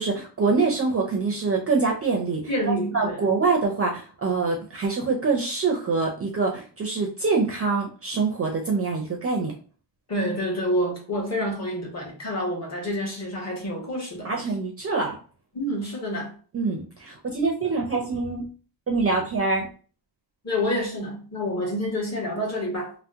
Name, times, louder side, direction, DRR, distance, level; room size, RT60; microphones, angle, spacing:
voice 1, 0.0-2.4 2.9-9.5 14.2-15.2 16.5-18.4 18.9-19.7, right 4 dB, 35° right, 0.4 m, -25 dB
voice 2, 2.5-3.2 10.1-14.3 15.5-16.3 20.4-22.9, equal, 35° left, 1.0 m, -28 dB
2.7 x 2.0 x 3.4 m
wide cardioid pair, 170°, 46 cm